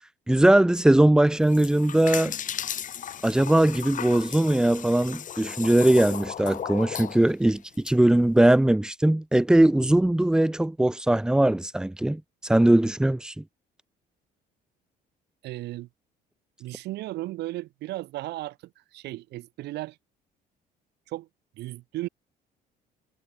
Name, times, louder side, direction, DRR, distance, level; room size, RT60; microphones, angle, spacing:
voice 1, 0.3-2.3 3.2-13.4, right 1 dB, 5° right, 0.5 m, -20 dB
sound 1, 1.3-7.9, left 9 dB, 50° left, 4.6 m, -36 dB
voice 2, 15.4-15.9 16.6-20.0 21.1-21.3 21.6-22.1, right 17 dB, 80° right, 6.4 m, -35 dB
cardioid pair, 110°, 17 cm